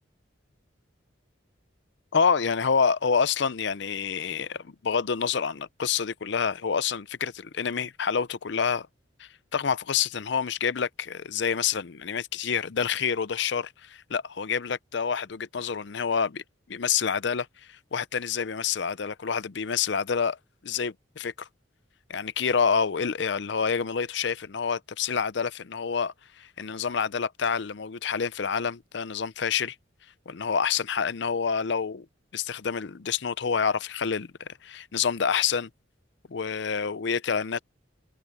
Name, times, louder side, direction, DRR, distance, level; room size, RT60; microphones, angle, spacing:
voice 1, 2.1-8.9 9.2-16.4 16.7-20.4 20.6-21.5 22.1-29.8 30.3-32.1 32.3-35.7 36.3-37.6, left 6 dB, 60° left, 0.5 m, -28 dB
head